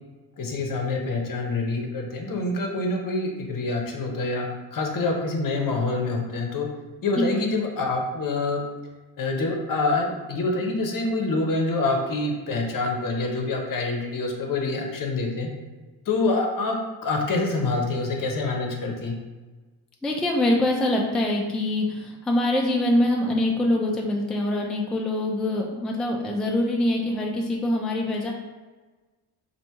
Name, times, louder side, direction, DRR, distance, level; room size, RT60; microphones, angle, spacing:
voice 1, 0.4-6.7 7.0-8.6 9.2-15.5 16.1-16.8 17.0-19.2, left 3 dB, 50° left, 2 dB, 0.8 m, -26 dB
voice 2, 20.0-28.3, left 1 dB, ahead, -1 dB, 0.4 m, -24 dB
3.4 x 2.6 x 2.8 m, 1.3 s
cardioid pair, 75°, 42 cm